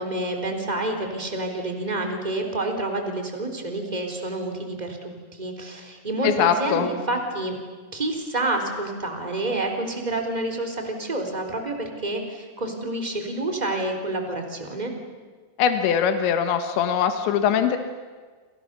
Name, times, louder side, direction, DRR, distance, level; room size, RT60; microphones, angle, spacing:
voice 1, 0.0-7.5 7.9-14.9, right 2 dB, 10° right, 4 dB, 3.1 m, -28 dB
voice 2, 6.2-6.9 15.6-17.8, left 8 dB, 85° left, 8 dB, 3.8 m, -22 dB
28.5 x 28.5 x 6.9 m, 1.5 s
omnidirectional pair, 5.1 m